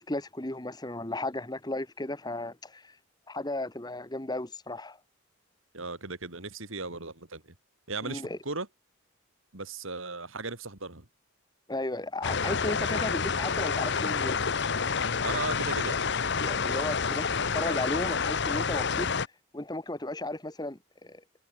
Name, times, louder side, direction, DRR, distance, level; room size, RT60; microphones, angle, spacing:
voice 1, 0.0-2.9 3.3-5.0 8.0-8.4 11.7-14.4 16.4-19.1 19.5-21.2, left 2 dB, 20° left, 1.3 m, -35 dB
voice 2, 5.7-7.5 7.9-8.7 9.5-11.0 15.2-16.0, right 3 dB, 65° right, 3.4 m, -36 dB
sound 1, 12.2-19.3, left 5 dB, 55° left, 1.0 m, -28 dB
head